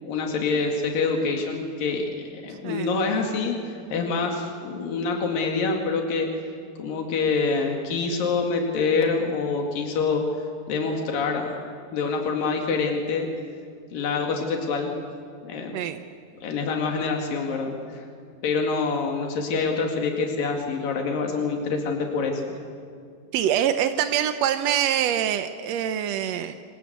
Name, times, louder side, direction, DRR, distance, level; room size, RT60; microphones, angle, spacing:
voice 1, 0.0-6.3 6.8-10.2 10.7-11.5 11.9-13.3 13.9-14.9 15.5-15.8 16.4-18.0 18.4-22.6, left 4 dB, 85° left, 2 dB, 4.1 m, -26 dB
voice 2, 15.7-16.0 23.3-26.5, right 10 dB, 70° right, 9 dB, 1.6 m, -24 dB
27.5 x 26.0 x 8.2 m, 2.3 s
omnidirectional pair, 3.9 m